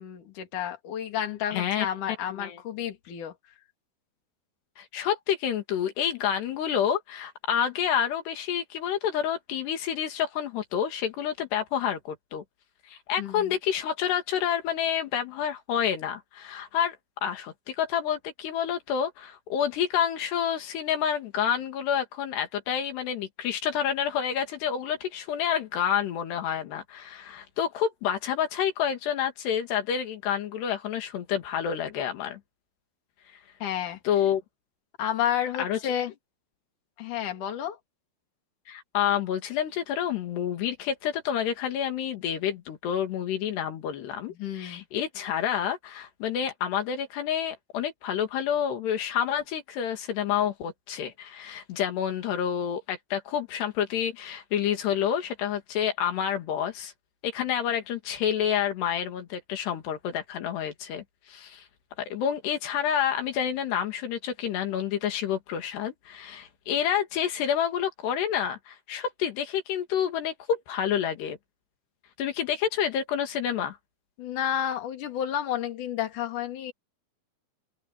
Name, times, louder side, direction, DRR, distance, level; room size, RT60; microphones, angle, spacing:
voice 1, 0.0-3.3 13.2-13.6 33.6-34.0 35.0-36.1 37.0-37.8 44.4-44.8 74.2-76.7, left 10 dB, 55° left, 3.8 m, -31 dB
voice 2, 1.5-1.9 2.3-2.6 4.8-12.4 12.9-17.0 17.2-32.4 34.1-34.4 35.6-36.0 38.7-56.9 57.2-61.6 62.0-71.4 72.2-73.8, left 9 dB, 85° left, 4.3 m, -29 dB
open air
omnidirectional pair, 4.7 m